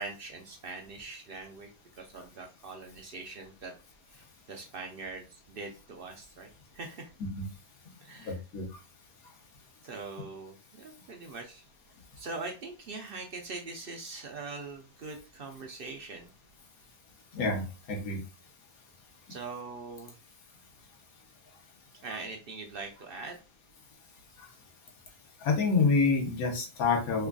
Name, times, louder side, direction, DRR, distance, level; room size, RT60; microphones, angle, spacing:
voice 1, 0.0-1.7 2.0-3.7 4.1-7.1 8.0-8.4 9.8-11.6 12.2-16.3 19.3-20.2 22.0-23.4, right 3 dB, 60° right, 3 dB, 0.6 m, -42 dB
voice 2, 8.2-8.8 17.3-18.2 24.4-24.5 25.4-27.3, left 4 dB, 75° left, 2 dB, 1.4 m, -28 dB
3.7 x 3.2 x 2.3 m, 0.32 s
omnidirectional pair, 1.5 m